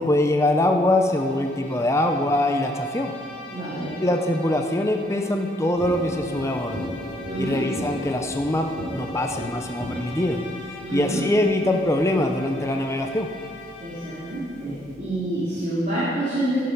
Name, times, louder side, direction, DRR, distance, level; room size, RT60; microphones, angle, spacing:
voice 1, 0.0-3.1 4.0-6.9 7.4-10.4 10.9-13.3, left 1 dB, 15° left, 4 dB, 0.6 m, -23 dB
Bowed string instrument, 0.7-14.6, left 3 dB, 30° left, 2.3 m, -43 dB
voice 2, 3.5-3.9 7.3-7.6 10.8-11.2 13.8-16.6, right 1 dB, 40° right, -11 dB, 2.9 m, -27 dB
sound 1, 5.8-15.0, left 1 dB, 25° right, 3.0 m, -38 dB
14.5 x 6.8 x 5.4 m, 2.3 s
head